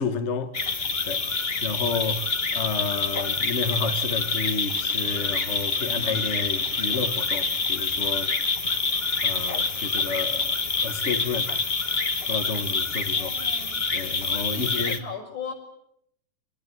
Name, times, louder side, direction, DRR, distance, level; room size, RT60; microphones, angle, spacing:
voice 1, 0.0-8.3 9.2-10.5 10.8-11.7 12.0-13.3 13.9-15.0, left 4 dB, 50° left, 0.8 m, -31 dB
sound 1, 0.5-15.0, left 4 dB, 30° left, 1.2 m, -26 dB
sound 2, 2.1-13.0, left 1 dB, 15° left, 8.1 m, -55 dB
voice 2, 13.1-13.9 14.5-15.5, left 6 dB, 65° left, 7.4 m, -38 dB
26.5 x 19.0 x 9.7 m
omnidirectional pair, 3.8 m